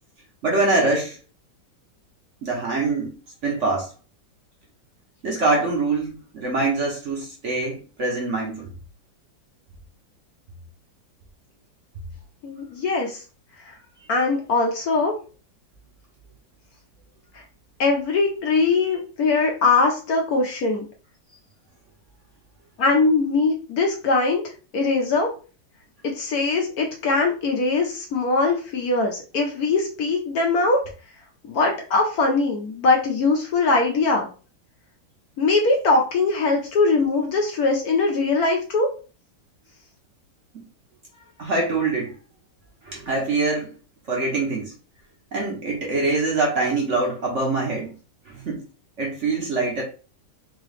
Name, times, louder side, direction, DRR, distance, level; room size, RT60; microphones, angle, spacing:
voice 1, 0.4-1.2 2.4-3.1 3.4-3.9 5.2-8.7 40.5-40.6 41.4-42.1 42.8-43.7 44.1-44.7 45.3-47.9 48.3-48.7 49.0-49.8, right 3 dB, 50° right, -1 dB, 1.0 m, -24 dB
voice 2, 12.4-13.2 13.6-13.7 14.1-15.1 17.3-17.4 17.8-20.8 22.8-24.4 24.7-25.3 26.0-30.8 31.5-34.3 35.4-38.9, left 3 dB, 65° left, 1 dB, 1.1 m, -21 dB
3.8 x 2.9 x 3.2 m, 0.36 s
omnidirectional pair, 2.0 m